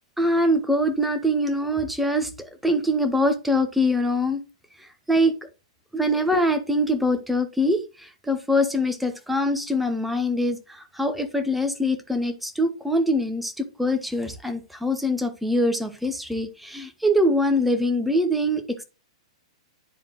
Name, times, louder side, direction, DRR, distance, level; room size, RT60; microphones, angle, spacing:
voice 1, 0.2-4.4 5.1-5.4 5.9-18.8, left 1 dB, ahead, 0.9 m, -23 dB
10.0 x 3.4 x 3.0 m
figure-of-eight pair, 110°, 3 cm